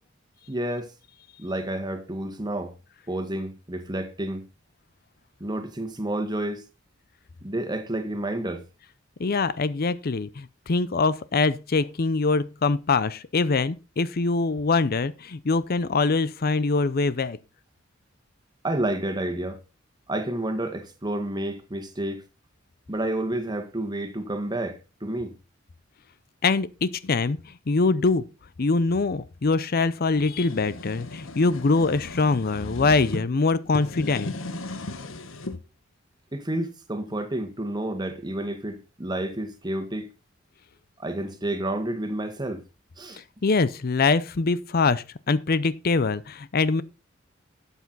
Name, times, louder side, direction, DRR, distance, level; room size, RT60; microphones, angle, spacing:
voice 1, 0.5-0.9 1.4-2.7 3.1-4.4 5.4-6.7 7.4-8.6 18.6-19.6 20.1-22.2 22.9-25.3 36.3-40.1 41.0-42.6 43.0-43.2, right 1 dB, 20° right, 1.5 m, -30 dB
voice 2, 9.2-17.4 26.4-27.4 27.7-28.2 28.6-34.3 43.1-46.8, left 3 dB, 50° left, 0.6 m, -23 dB
sound 1, 30.2-33.2 33.7-35.6, left 2 dB, 90° left, 1.3 m, -36 dB
12.0 x 8.2 x 4.0 m
head